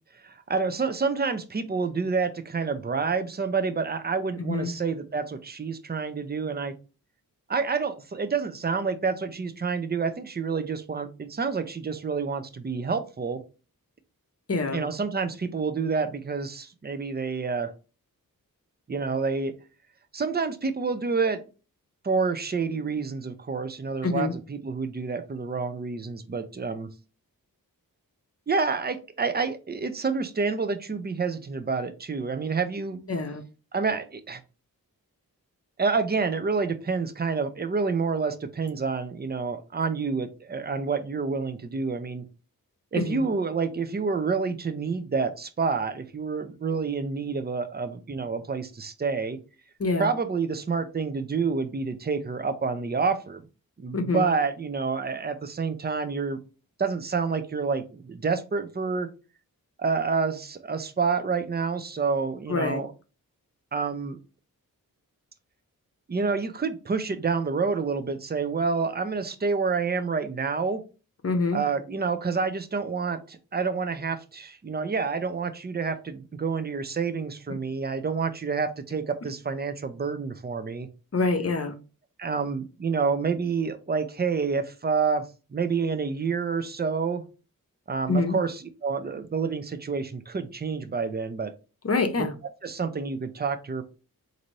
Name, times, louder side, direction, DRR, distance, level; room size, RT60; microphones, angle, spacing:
voice 1, 0.2-6.7 7.5-13.4 14.7-17.7 18.9-19.5 20.1-21.4 22.0-26.9 28.5-33.0 33.7-34.4 35.8-42.2 42.9-49.4 50.0-53.4 53.8-56.4 56.8-59.1 59.8-62.9 63.7-64.2 66.1-70.8 71.5-80.9 82.2-85.2 85.5-87.2 87.9-91.5 92.6-93.8, right 5 dB, 30° right, 0.5 m, -28 dB
voice 2, 4.4-4.7 14.5-14.9 24.0-24.3 33.1-33.4 42.9-43.3 49.8-50.1 53.9-54.2 62.5-62.8 71.2-71.6 81.1-81.7 88.1-88.4 91.8-92.3, left 3 dB, 40° left, 0.7 m, -26 dB
4.0 x 2.7 x 3.1 m
wide cardioid pair, 65°, 35 cm